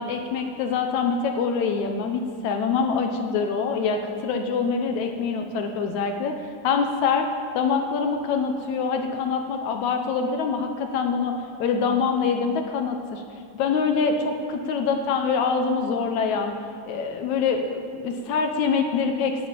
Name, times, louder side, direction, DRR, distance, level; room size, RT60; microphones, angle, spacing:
voice 1, 0.0-6.4 6.6-7.3 7.6-13.2 13.5-16.6 16.9-19.5, left 5 dB, 70° left, 5 dB, 2.0 m, -25 dB
11.0 x 8.4 x 8.7 m, 2.2 s
omnidirectional pair, 3.8 m